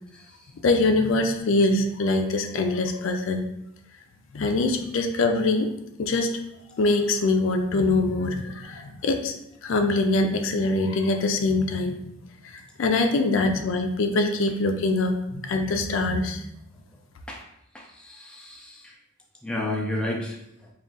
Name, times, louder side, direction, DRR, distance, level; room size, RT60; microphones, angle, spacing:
voice 1, 0.6-3.4 4.3-5.7 6.0-6.3 6.8-9.3 9.6-12.0 12.4-16.4, left 2 dB, 65° left, 5 dB, 0.4 m, -23 dB
voice 2, 17.7-18.9 19.4-20.7, left 1 dB, 5° left, -1 dB, 0.4 m, -32 dB
3.4 x 2.4 x 3.8 m, 0.79 s
head